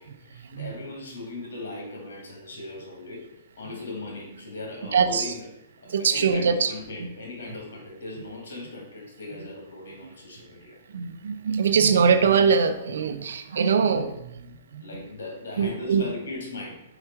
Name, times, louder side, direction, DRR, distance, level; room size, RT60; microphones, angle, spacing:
voice 1, 0.0-5.5 5.8-10.8 14.8-16.8, left 2 dB, 75° left, -2 dB, 2.1 m, -38 dB
voice 2, 4.9-5.3 5.9-6.7 10.9-14.3 14.7-14.8 15.6-16.0, right 6 dB, 80° right, 10 dB, 0.6 m, -22 dB
4.9 x 4.4 x 4.6 m, 0.85 s
hypercardioid pair, 145°, 0 cm